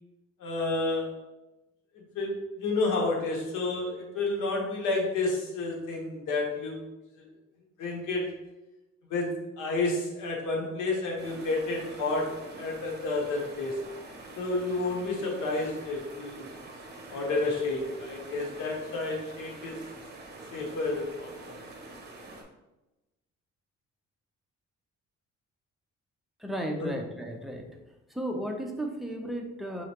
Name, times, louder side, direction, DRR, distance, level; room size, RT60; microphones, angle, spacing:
voice 1, 0.4-1.2 1.9-6.8 7.8-8.3 9.1-13.9 14.3-16.5 17.1-19.8 20.5-21.6 26.8-26.9, left 2 dB, 90° left, 0 dB, 1.1 m, -30 dB
sound 1, 11.2-22.4, right 2 dB, 35° right, 0.9 m, -46 dB
voice 2, 26.4-27.7 28.1-29.9, right 1 dB, ahead, 1 dB, 0.7 m, -34 dB
4.8 x 3.2 x 2.9 m, 1.0 s
cardioid pair, 90°, 30 cm